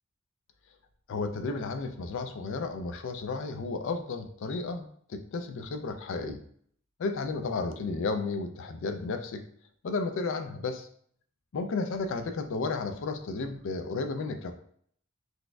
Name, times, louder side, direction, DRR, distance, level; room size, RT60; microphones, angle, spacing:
voice 1, 1.1-6.4 7.0-9.4 9.8-10.9 11.5-14.5, left 3 dB, 60° left, 7 dB, 0.4 m, -33 dB
4.0 x 2.5 x 2.2 m, 0.62 s
head